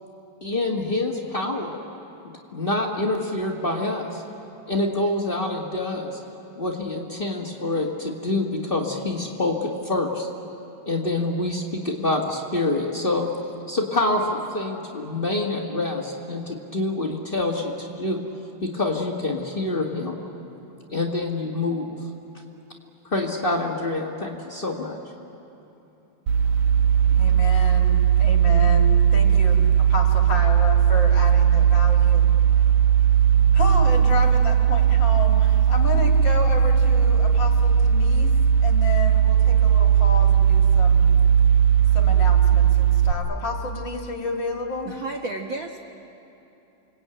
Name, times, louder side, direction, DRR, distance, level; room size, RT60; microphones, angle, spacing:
voice 1, 0.4-1.8 2.5-4.2 4.7-6.2 6.5-10.3 10.8-13.3 13.7-18.2 18.6-20.1 20.9-22.0 23.1-25.0, left 2 dB, 85° left, -2 dB, 0.4 m, -26 dB
sound 1, 26.3-43.1, right 8 dB, 60° right, 1.9 m, -18 dB
voice 2, 27.1-32.3 33.5-38.3 38.6-41.2 41.9-44.9, left 3 dB, 40° left, 1 dB, 2.1 m, -31 dB
voice 3, 44.9-45.8, right 3 dB, 85° right, 3 dB, 1.0 m, -32 dB
29.5 x 21.5 x 8.9 m, 2.9 s
omnidirectional pair, 4.1 m